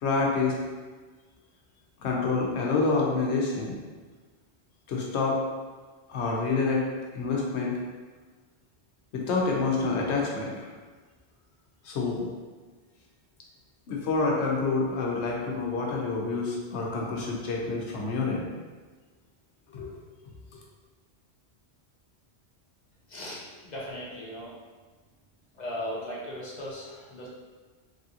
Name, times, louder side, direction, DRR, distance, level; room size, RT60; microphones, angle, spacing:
voice 1, 0.0-0.6 2.0-3.8 4.9-5.4 6.1-6.8 7.1-7.7 9.1-10.7 11.8-12.3 13.9-18.5 19.7-20.0, left 4 dB, 85° left, -2 dB, 0.9 m, -27 dB
voice 2, 23.1-24.5 25.5-27.3, equal, 50° left, -5 dB, 0.6 m, -37 dB
3.2 x 2.4 x 2.7 m, 1.4 s
omnidirectional pair, 1.1 m